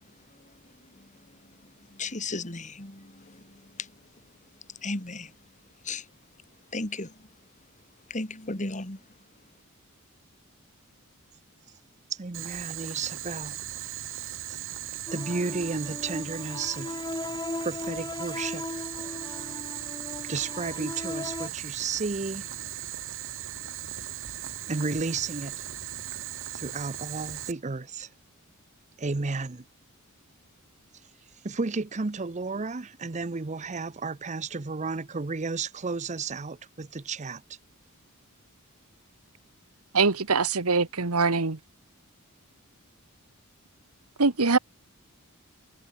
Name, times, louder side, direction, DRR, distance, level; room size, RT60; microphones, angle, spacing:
voice 1, 0.3-3.9 4.7-5.3 5.8-6.1 6.7-7.3 8.1-9.0, left 3 dB, 35° left, 3.3 m, -36 dB
voice 2, 12.1-13.6 14.5-14.6 15.1-17.0 17.6-18.7 20.2-22.5 24.7-25.7 26.5-28.1 29.0-29.6 30.9-37.6, right 4 dB, 35° right, 0.7 m, -33 dB
Boiling, 12.3-27.5, right 12 dB, 60° right, 3.2 m, -38 dB
sound 1, 15.1-21.5, left 2 dB, 20° left, 0.8 m, -37 dB
voice 3, 39.9-41.6 44.2-44.6, right 4 dB, 85° right, 1.5 m, -23 dB
head